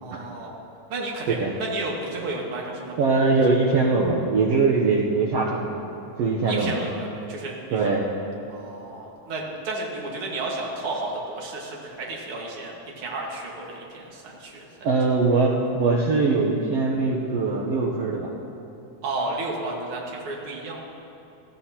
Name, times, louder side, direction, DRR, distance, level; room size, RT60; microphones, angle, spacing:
voice 1, 0.0-0.5 0.9-3.0 6.5-7.9 8.5-14.9 19.0-20.8, right 2 dB, 50° right, -2 dB, 2.3 m, -32 dB
voice 2, 3.0-5.7 6.2-6.8 7.7-8.0 14.8-18.3, right 3 dB, 70° right, -3 dB, 1.6 m, -22 dB
19.0 x 14.0 x 2.9 m, 2.8 s
omnidirectional pair, 3.7 m